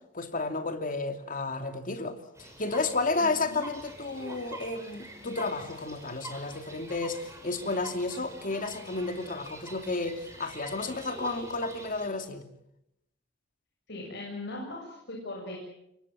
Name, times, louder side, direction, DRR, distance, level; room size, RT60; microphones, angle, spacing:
voice 1, 0.1-12.5, left 3 dB, 45° left, 2.7 m, -32 dB
sound 1, 2.3-12.1, right 2 dB, 15° right, 5.8 m, -46 dB
voice 2, 13.9-15.6, left 2 dB, 60° left, 7.3 m, -39 dB
27.5 x 23.0 x 7.4 m
head